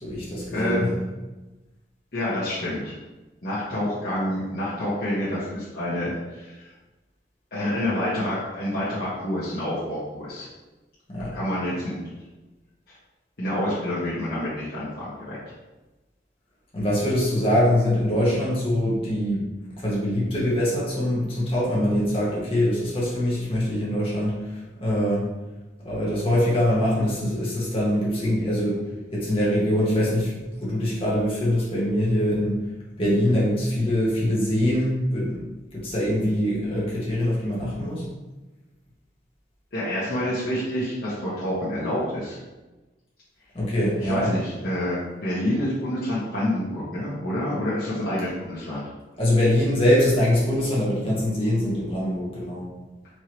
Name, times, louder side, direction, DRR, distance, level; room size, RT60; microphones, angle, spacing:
voice 1, 0.0-0.9 11.1-11.4 16.7-24.5 24.8-25.3 25.8-28.8 29.1-32.6 33.0-35.4 35.7-38.1 43.5-44.3 49.2-52.7, left 1 dB, 30° left, -6 dB, 1.3 m, -23 dB
voice 2, 0.5-0.9 2.1-2.9 3.4-6.7 7.5-10.5 11.3-12.0 12.9-13.0 13.4-15.4 39.7-42.4 44.0-48.8, left 1 dB, 60° left, -10 dB, 1.1 m, -28 dB
4.5 x 3.1 x 3.0 m, 1.1 s
head